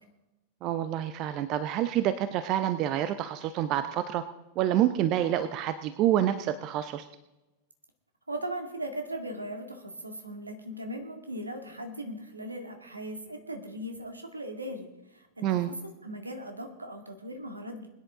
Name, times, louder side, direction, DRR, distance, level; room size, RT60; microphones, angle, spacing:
voice 1, 0.6-4.2 4.6-7.1 15.4-15.7, right 12 dB, 40° right, 12 dB, 0.7 m, -27 dB
voice 2, 8.3-15.7 16.0-17.9, right 1 dB, 80° right, 5 dB, 2.1 m, -38 dB
21.5 x 10.0 x 3.7 m, 1.0 s
figure-of-eight pair, 90°, 0 cm